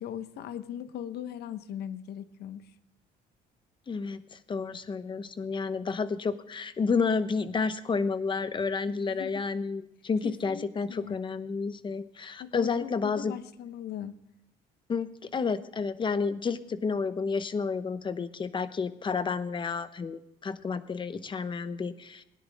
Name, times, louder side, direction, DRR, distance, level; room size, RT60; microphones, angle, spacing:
voice 1, 0.0-2.6 8.8-9.5 10.2-11.2 12.4-14.2, left 10 dB, 70° left, 12 dB, 1.0 m, -39 dB
voice 2, 3.9-13.3 14.9-22.2, left 5 dB, 30° left, 12 dB, 0.9 m, -31 dB
17.5 x 10.5 x 3.5 m, 0.81 s
cardioid pair, 110°, 17 cm